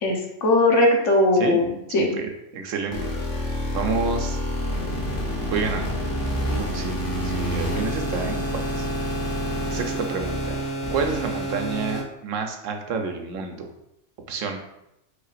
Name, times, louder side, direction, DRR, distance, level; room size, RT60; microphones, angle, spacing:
voice 1, 0.0-2.1, left 2 dB, 75° left, 0 dB, 1.3 m, -19 dB
voice 2, 2.2-3.1 3.7-4.4 5.5-5.9 6.5-7.0 7.2-8.9 9.7-10.6 10.9-13.7 14.3-14.7, right 5 dB, 85° right, 4 dB, 1.1 m, -29 dB
sound 1, 2.9-12.0, equal, 45° left, 1.1 m, -28 dB
5.6 x 3.9 x 2.5 m, 0.83 s
omnidirectional pair, 1.3 m